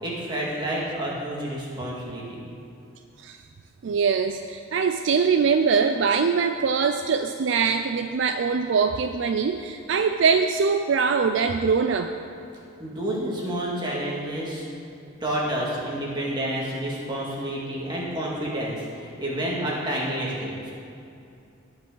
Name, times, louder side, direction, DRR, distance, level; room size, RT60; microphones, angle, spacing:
voice 1, 0.0-2.4 12.8-14.6 15.2-20.7, right 1 dB, 20° right, -5 dB, 2.0 m, -29 dB
voice 2, 3.8-12.1, right 5 dB, 60° right, 7 dB, 0.4 m, -22 dB
18.0 x 6.1 x 3.8 m, 2.6 s
head